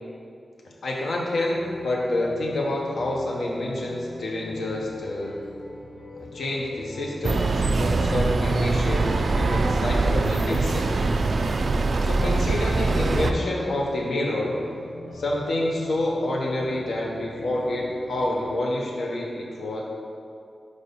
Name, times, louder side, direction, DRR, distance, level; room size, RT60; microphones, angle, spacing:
voice 1, 0.8-5.3 6.3-10.9 12.0-14.6 15.1-19.8, left 1 dB, 85° left, -2 dB, 1.0 m, -28 dB
sound 1, 1.5-18.4, left 2 dB, 55° left, 1.2 m, -42 dB
sound 2, 7.2-13.3, right 3 dB, 55° right, 0.3 m, -23 dB
4.9 x 4.3 x 5.3 m, 2.4 s
wide cardioid pair, 125°, 0 cm